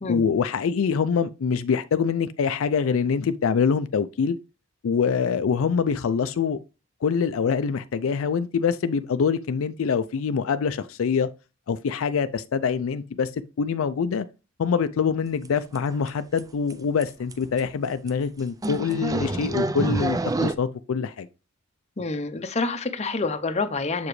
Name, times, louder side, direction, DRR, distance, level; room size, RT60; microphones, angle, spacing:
voice 1, 0.1-4.4 4.8-6.6 7.0-11.3 11.7-13.3 13.6-14.3 14.6-21.3, left 6 dB, 85° left, 0.4 m, -24 dB
sound 1, 15.4-15.5 15.8-16.1 16.4-16.5 16.7-16.8 17.0-17.1 17.3-17.6 18.1-18.2 18.6-20.5, right 2 dB, 15° right, 0.3 m, -26 dB
voice 2, 22.0-24.1, left 3 dB, 35° left, 0.6 m, -27 dB
7.0 x 4.9 x 3.1 m
head